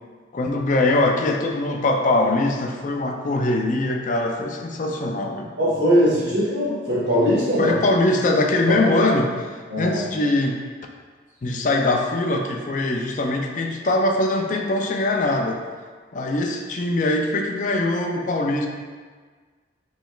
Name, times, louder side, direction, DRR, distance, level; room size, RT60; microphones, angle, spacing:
voice 1, 0.3-5.5 7.6-9.5 9.8-10.6 11.4-15.6 16.1-18.7, left 2 dB, 40° left, 2 dB, 0.4 m, -22 dB
voice 2, 5.6-7.8 8.7-8.8 9.7-10.0, equal, 60° right, -14 dB, 1.4 m, -20 dB
6.0 x 3.2 x 2.4 m, 1.5 s
head